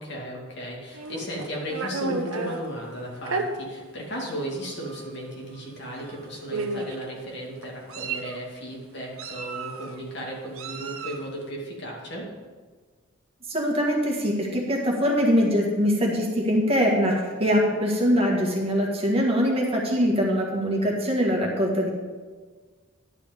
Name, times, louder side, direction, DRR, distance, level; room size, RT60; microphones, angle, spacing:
voice 1, 0.0-12.3, right 1 dB, 55° left, -2 dB, 2.5 m, -35 dB
Meow, 0.9-2.6 3.3-3.5 4.3-4.4 4.8-5.0 6.0-6.1 6.5-7.0 7.6-8.4 9.2-9.9 10.6-11.3, right 3 dB, 85° right, 1.0 m, -32 dB
voice 2, 13.5-21.9, equal, 30° right, -1 dB, 1.8 m, -23 dB
11.0 x 5.0 x 8.2 m, 1.4 s
head